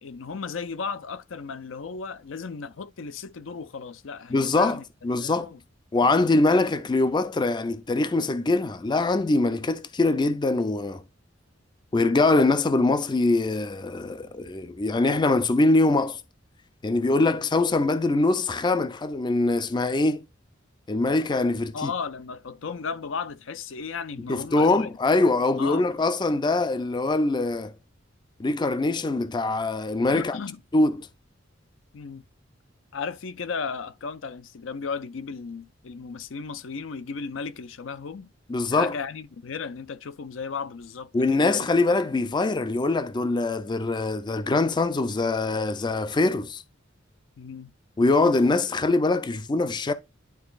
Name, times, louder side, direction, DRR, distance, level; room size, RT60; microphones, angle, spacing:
voice 1, 0.0-4.8 5.1-5.6 17.3-17.5 21.7-24.9 25.6-25.8 30.1-30.6 31.9-32.2 32.9-38.3 38.7-41.7 47.4-47.7, left 5 dB, 75° left, 0.5 m, -35 dB
voice 2, 4.3-4.8 5.0-5.5 5.9-11.0 11.9-16.2 16.8-20.2 20.9-21.9 24.3-27.7 28.4-30.4 30.7-31.1 38.5-38.9 41.1-46.6 48.0-49.9, left 2 dB, 25° left, 0.4 m, -23 dB
11.0 x 3.9 x 2.4 m
head